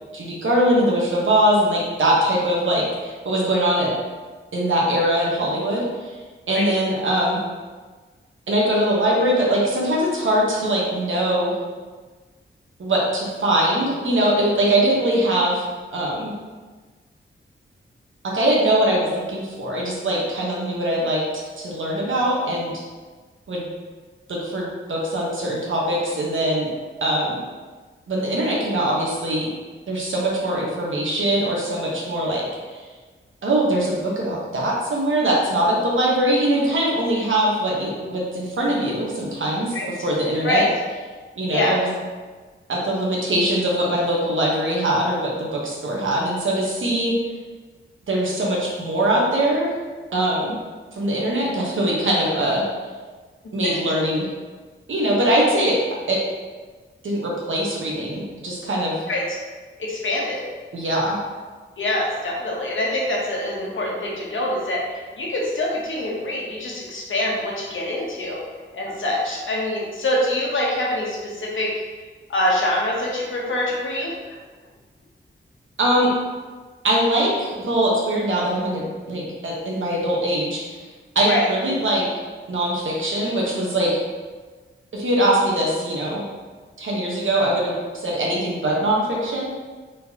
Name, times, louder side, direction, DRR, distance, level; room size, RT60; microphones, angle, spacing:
voice 1, 0.1-3.9 4.5-5.8 6.5-7.4 8.5-11.6 12.8-15.6 15.9-16.3 18.2-22.7 23.5-23.7 24.3-26.7 27.0-27.4 28.1-29.5 29.9-32.5 32.7-32.8 33.4-39.7 40.0-40.7 41.4-41.9 42.7-47.1 48.1-49.7 50.1-50.5 50.9-52.6 53.5-54.3 54.9-55.8 56.1-56.2 57.0-59.0 60.7-61.2 75.8-76.1 76.8-80.6 81.1-82.0 82.5-83.9 84.9-86.2 86.8-89.6, right 1 dB, 70° right, -4 dB, 1.2 m, -22 dB
voice 2, 59.8-60.4 61.8-68.4 68.7-71.7 72.3-74.1 81.3-81.5, left 1 dB, 70° left, -3 dB, 1.0 m, -24 dB
4.2 x 3.9 x 2.8 m, 1.4 s
wide cardioid pair, 125°, 21 cm